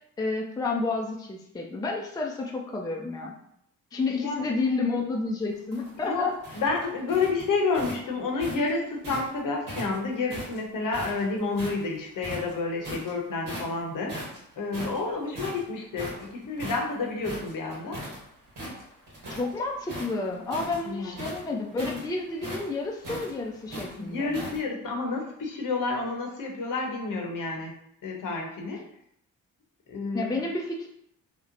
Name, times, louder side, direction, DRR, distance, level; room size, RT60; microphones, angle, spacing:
voice 1, 0.2-3.3 3.9-6.3 19.3-24.5 30.1-30.9, left 3 dB, 10° left, 0 dB, 0.4 m, -30 dB
voice 2, 4.1-4.5 6.0-14.1 14.6-18.0 20.8-21.3 24.0-27.7 28.0-28.8 29.9-30.3, left 3 dB, 60° left, 1 dB, 0.8 m, -30 dB
sound 1, 5.5-9.3 9.7-11.8 12.2-13.1 13.4-13.8 14.1-18.2 18.5-19.5 19.8-24.6, equal, 65° right, 1.3 m, -39 dB
2.8 x 2.1 x 2.5 m, 0.73 s
supercardioid pair, 50°, 36 cm